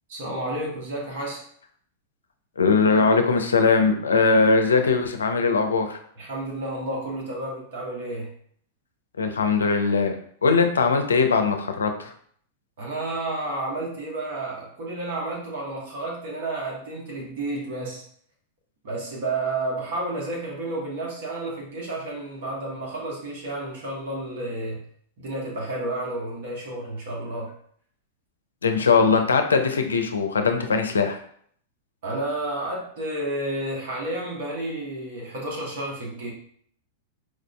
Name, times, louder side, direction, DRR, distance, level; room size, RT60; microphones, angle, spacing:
voice 1, 0.1-1.4 6.2-8.3 12.8-18.0 18.8-24.8 25.2-27.5 32.0-36.3, right 2 dB, 65° right, -2 dB, 1.2 m, -31 dB
voice 2, 2.6-6.0 9.2-10.2 10.4-12.1 28.6-31.2, left 4 dB, 90° left, 6 dB, 0.4 m, -20 dB
4.8 x 2.5 x 2.2 m, 0.62 s
hypercardioid pair, 105°, 0 cm